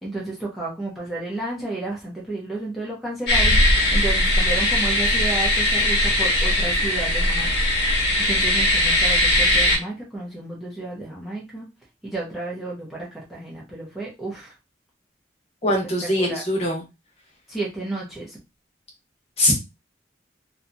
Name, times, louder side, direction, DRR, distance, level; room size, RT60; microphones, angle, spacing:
voice 1, 0.0-7.5 8.3-11.7 12.0-14.5 16.0-16.4 17.5-18.4, right 2 dB, ahead, -6 dB, 0.6 m, -32 dB
sound 1, 3.3-9.8, left 1 dB, 65° left, 0.9 m, -19 dB
voice 2, 15.6-16.8 19.4-19.5, left 1 dB, 35° left, -1 dB, 0.9 m, -22 dB
2.7 x 2.3 x 2.6 m, 0.25 s
head